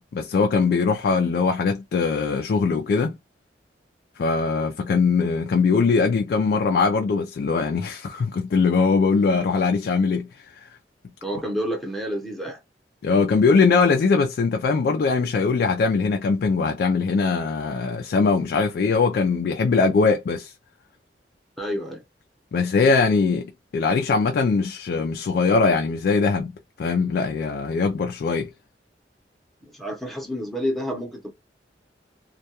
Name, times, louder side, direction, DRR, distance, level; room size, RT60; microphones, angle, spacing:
voice 1, 0.0-3.2 4.2-10.7 13.0-20.5 22.5-26.5 26.8-28.5, left 4 dB, 60° left, 0.3 m, -21 dB
voice 2, 11.2-12.6 21.6-22.0 29.6-31.3, equal, ahead, 0.7 m, -29 dB
2.2 x 2.2 x 2.8 m
head